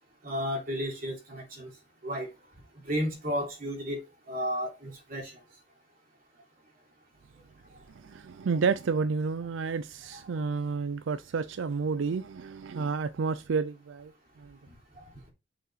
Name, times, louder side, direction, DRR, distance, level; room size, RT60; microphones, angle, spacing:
voice 1, 0.2-1.7 2.0-2.3 2.8-5.3 10.1-10.2 15.0-15.3, equal, 50° right, 3.2 m, -33 dB
voice 2, 8.0-14.1 14.4-14.6, right 5 dB, 90° right, 0.4 m, -30 dB
6.3 x 5.4 x 4.2 m
head